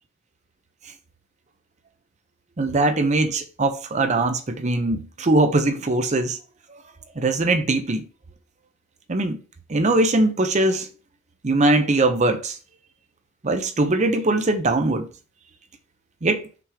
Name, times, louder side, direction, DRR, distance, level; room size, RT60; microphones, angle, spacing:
voice 1, 2.6-6.4 7.2-8.0 9.1-9.4 9.7-10.9 11.4-12.6 13.4-15.1 16.2-16.4, right 2 dB, 35° right, 0.6 m, -21 dB
5.9 x 3.5 x 4.9 m
head